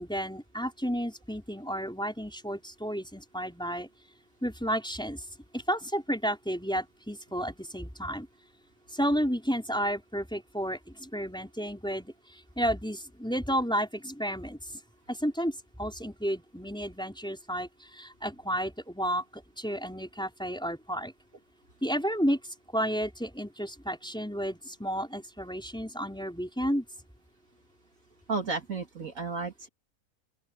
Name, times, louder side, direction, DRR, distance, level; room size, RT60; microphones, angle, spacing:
voice 1, 0.0-3.9 4.4-5.2 5.5-8.3 8.9-14.8 15.1-21.1 21.8-26.8, equal, 5° left, 4.5 m, -32 dB
voice 2, 28.3-29.7, right 4 dB, 60° right, 2.8 m, -33 dB
open air
omnidirectional pair, 1.6 m